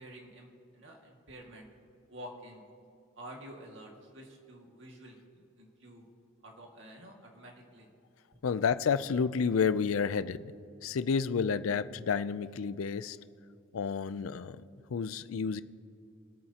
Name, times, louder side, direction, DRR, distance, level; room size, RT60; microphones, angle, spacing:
voice 1, 0.0-1.7 2.1-2.6 3.2-5.2 5.6-6.1 6.4-7.9, right 1 dB, 60° right, 0 dB, 2.0 m, -49 dB
voice 2, 8.4-10.5 10.8-13.2 13.7-14.6 14.9-15.6, left 6 dB, 85° left, 15 dB, 0.4 m, -30 dB
24.5 x 9.0 x 2.9 m, 2.5 s
head